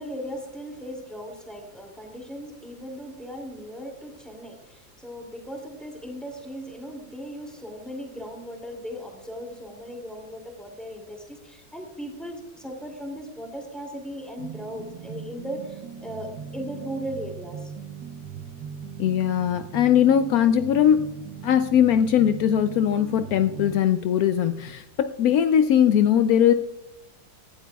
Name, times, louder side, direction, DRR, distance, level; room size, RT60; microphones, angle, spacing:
voice 1, 0.0-17.7, equal, ahead, 2 dB, 2.3 m, -37 dB
sound 1, 14.4-23.8, right 7 dB, 70° right, 1.4 m, -39 dB
voice 2, 19.0-26.5, left 9 dB, 80° left, 9 dB, 0.8 m, -20 dB
17.5 x 12.0 x 2.3 m, 0.88 s
omnidirectional pair, 2.1 m